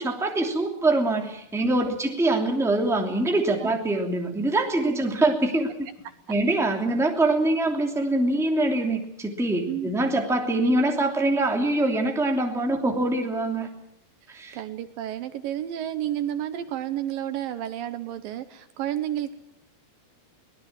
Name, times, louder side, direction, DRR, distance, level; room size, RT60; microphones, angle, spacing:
voice 1, 0.0-5.9 6.3-13.7 14.3-14.6, right 2 dB, ahead, 2 dB, 2.1 m, -24 dB
voice 2, 14.3-19.3, right 11 dB, 75° right, 11 dB, 2.5 m, -31 dB
23.5 x 18.5 x 7.4 m, 0.75 s
omnidirectional pair, 4.3 m